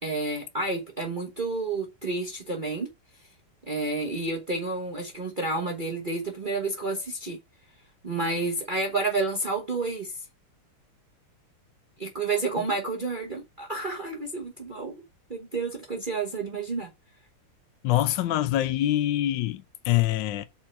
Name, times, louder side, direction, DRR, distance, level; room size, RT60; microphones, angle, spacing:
voice 1, 0.0-2.9 3.7-7.4 8.0-10.2 12.0-15.0 15.3-16.9, right 3 dB, 30° right, 1.0 m, -30 dB
voice 2, 17.8-20.5, left 14 dB, 70° left, 1.2 m, -25 dB
5.4 x 4.5 x 5.7 m
omnidirectional pair, 2.3 m